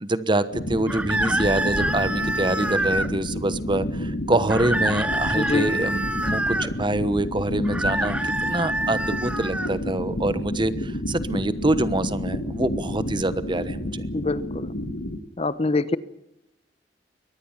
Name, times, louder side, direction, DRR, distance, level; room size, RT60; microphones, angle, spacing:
voice 1, 0.0-14.0, right 1 dB, 25° right, 14 dB, 1.1 m, -25 dB
sound 1, 0.5-15.2, left 1 dB, 90° left, 1.9 m, -30 dB
sound 2, 0.9-3.1 4.5-6.7 7.6-9.7, right 1 dB, 5° right, 1.1 m, -26 dB
voice 2, 5.3-5.8 14.1-14.7 15.4-16.0, left 2 dB, 35° left, 15 dB, 0.9 m, -24 dB
23.5 x 19.5 x 7.3 m, 0.84 s
head